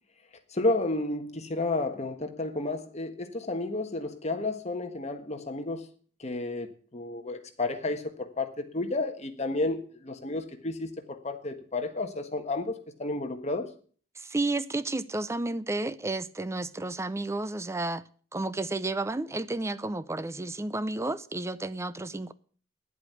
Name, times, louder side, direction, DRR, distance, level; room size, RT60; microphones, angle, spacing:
voice 1, 0.5-5.8 6.2-13.7, left 2 dB, 35° left, 1.5 m, -31 dB
voice 2, 14.2-18.0 18.3-22.3, right 2 dB, 15° right, 0.5 m, -31 dB
10.0 x 8.3 x 8.2 m
head